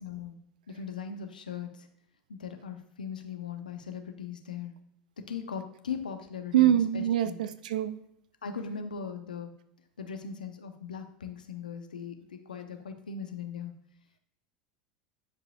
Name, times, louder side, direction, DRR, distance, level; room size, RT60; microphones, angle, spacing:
voice 1, 0.0-0.4 0.7-1.9 2.3-4.7 5.3-7.4 8.4-9.5 10.0-13.7, left 6 dB, 85° left, 6 dB, 0.8 m, -39 dB
voice 2, 6.5-7.9, right 11 dB, 75° right, 13 dB, 0.4 m, -24 dB
10.0 x 4.9 x 2.5 m, 0.76 s
hypercardioid pair, 85°, 4 cm